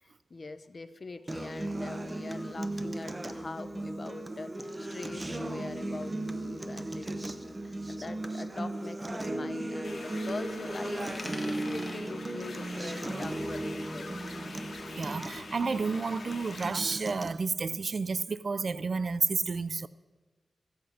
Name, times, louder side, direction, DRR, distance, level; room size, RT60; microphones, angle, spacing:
voice 1, 0.0-14.1, left 3 dB, 45° left, 0.6 m, -43 dB
Acoustic guitar, 1.3-17.3, right 1 dB, 25° right, 0.7 m, -36 dB
sound 1, 9.8-16.7, left 4 dB, 70° left, 1.5 m, -45 dB
Coin (dropping), 11.0-13.7 14.0-16.0, left 1 dB, 15° left, 1.4 m, -49 dB
voice 2, 14.9-19.9, right 4 dB, 55° right, 0.3 m, -31 dB
15.0 x 8.0 x 5.0 m
wide cardioid pair, 80°, 0 cm